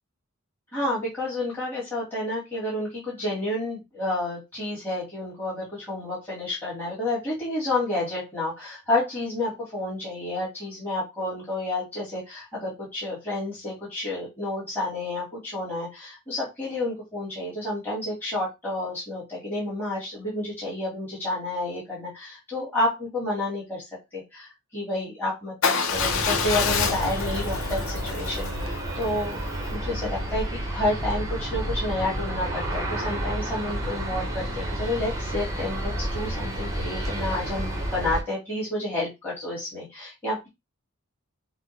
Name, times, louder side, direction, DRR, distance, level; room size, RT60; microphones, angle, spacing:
voice 1, 0.7-23.8 24.1-29.4 29.7-40.5, left 1 dB, 10° left, -8 dB, 1.9 m, -30 dB
Motorcycle / Engine starting / Idling, 25.6-29.7, left 5 dB, 75° left, 0.7 m, -28 dB
Aircraft, 25.9-38.2, right 1 dB, 15° right, 0.9 m, -30 dB
5.8 x 2.2 x 3.2 m, 0.22 s
head